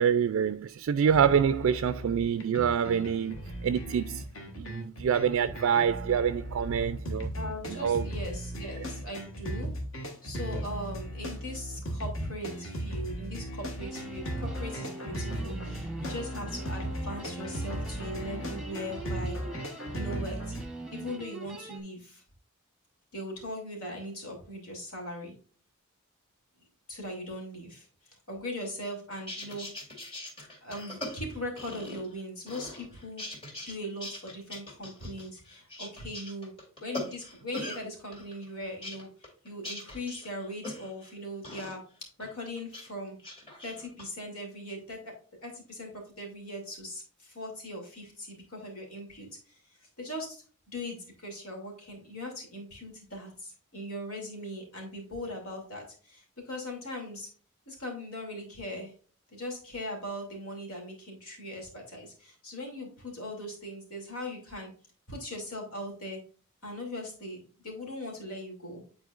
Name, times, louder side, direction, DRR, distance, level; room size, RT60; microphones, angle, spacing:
voice 1, 0.0-4.2 4.6-7.3 7.7-8.1 8.8-8.9, right 7 dB, 65° right, 0.3 m, -26 dB
sound 1, 1.1-20.6, equal, 65° left, 1.5 m, -37 dB
voice 2, 7.3-9.7 10.2-19.4 19.9-20.6 20.9-22.2 23.1-25.3 26.9-27.9 28.3-29.7 30.6-33.2 33.7-36.5 36.8-41.8 42.2-43.2 43.6-45.1 45.4-50.4 50.7-57.3 57.7-58.9 59.3-64.7 65.1-66.2 66.6-68.8, left 1 dB, 90° left, 2.7 m, -40 dB
sound 2, 13.8-21.8, right 2 dB, 5° right, 0.9 m, -42 dB
sound 3, 29.1-32.2 32.5-33.8 34.0-37.8 38.1-41.1 41.4-41.8 42.2-42.9 43.2-44.0, left 1 dB, 25° left, 2.3 m, -41 dB
9.4 x 4.3 x 2.4 m
head